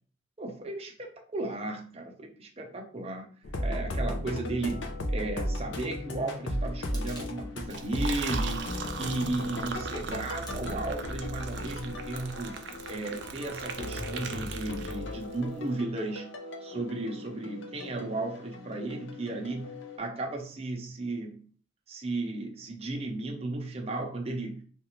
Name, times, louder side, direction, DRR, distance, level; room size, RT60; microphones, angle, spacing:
voice 1, 0.4-3.3 3.6-4.8 5.1-12.6 12.9-16.3 16.6-21.4 21.9-24.6, right 2 dB, 30° right, 1 dB, 0.7 m, -35 dB
sound 1, 3.4-20.0, left 1 dB, 75° left, 0.6 m, -36 dB
sound 2, 6.8-7.4 7.8-8.3 8.8-9.6 10.1-10.8 11.3-12.0 12.6-13.2 13.6-14.1, left 1 dB, 20° left, 0.7 m, -53 dB
Liquid, 7.6-15.3, right 5 dB, 60° right, 0.4 m, -39 dB
3.6 x 2.4 x 3.0 m, 0.43 s
head